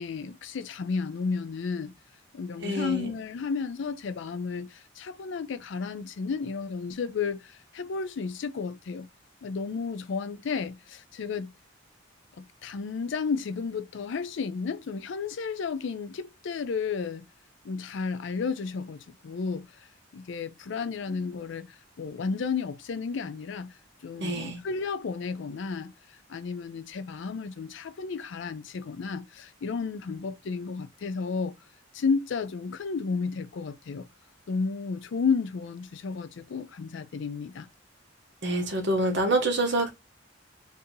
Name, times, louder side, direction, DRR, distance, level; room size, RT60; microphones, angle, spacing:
voice 1, 0.0-1.9 2.3-9.1 9.4-11.5 12.4-17.2 17.6-19.0 19.2-19.9 20.1-25.9 26.3-31.5 31.9-34.1 34.5-37.7, left 5 dB, 65° left, 0.4 m, -32 dB
voice 2, 2.6-3.1 24.2-24.6 38.4-39.9, right 2 dB, 60° right, 1.0 m, -26 dB
2.7 x 2.6 x 3.7 m
head